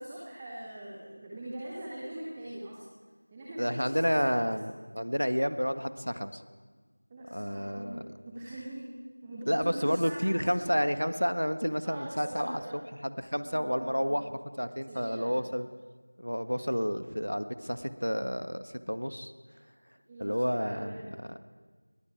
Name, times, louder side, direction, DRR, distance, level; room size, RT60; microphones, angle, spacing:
voice 1, 0.0-2.8 3.3-4.5 7.1-8.0 8.3-8.9 9.2-11.0 11.8-12.8 13.4-14.2 14.8-15.3 20.1-21.1, right 1 dB, 5° right, -5 dB, 0.7 m, -42 dB
voice 2, 3.6-6.4 7.3-8.0 9.5-14.2 14.6-15.7 16.2-19.3 20.2-21.4, equal, 90° left, 10 dB, 1.6 m, -30 dB
29.0 x 21.5 x 4.8 m, 1.4 s
figure-of-eight pair, 175°, 0 cm